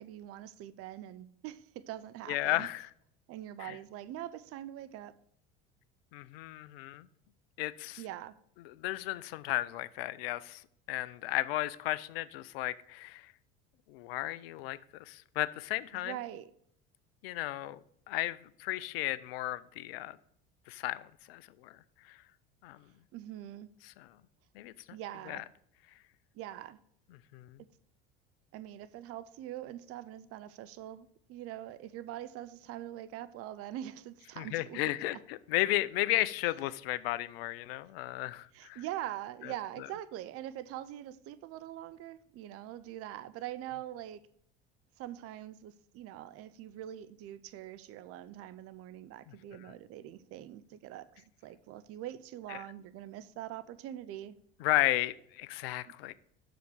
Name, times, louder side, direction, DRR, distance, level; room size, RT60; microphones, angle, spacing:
voice 1, 0.0-2.7 3.3-5.1 8.0-8.4 15.9-16.5 23.1-23.7 24.9-25.5 26.3-26.8 28.5-34.8 35.7-35.8 38.5-44.2 45.0-54.3, right 12 dB, 50° right, 0.6 m, -43 dB
voice 2, 2.3-2.9 3.6-3.8 6.1-7.1 7.6-8.0 8.6-10.6 10.9-13.3 13.9-16.1 17.2-17.8 18.1-20.2 20.7-21.8 22.0-22.2 22.6-22.8 23.8-24.1 24.5-24.7 25.3-25.4 27.3-27.6 34.4-38.8 39.4-39.5 49.3-49.4 52.5-52.6 54.6-56.1, left 16 dB, 75° left, 0.6 m, -34 dB
6.8 x 5.1 x 6.2 m
hypercardioid pair, 75°, 30 cm